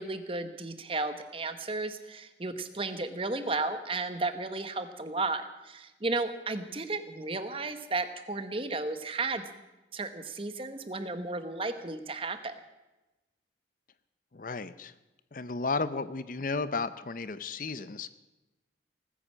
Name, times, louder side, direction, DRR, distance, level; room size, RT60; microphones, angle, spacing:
voice 1, 0.0-9.4 9.9-12.6, right 3 dB, 30° right, 10 dB, 1.1 m, -34 dB
voice 2, 14.3-14.9 15.3-18.1, left 4 dB, 45° left, 14 dB, 0.6 m, -33 dB
19.0 x 9.9 x 7.4 m, 1.0 s
head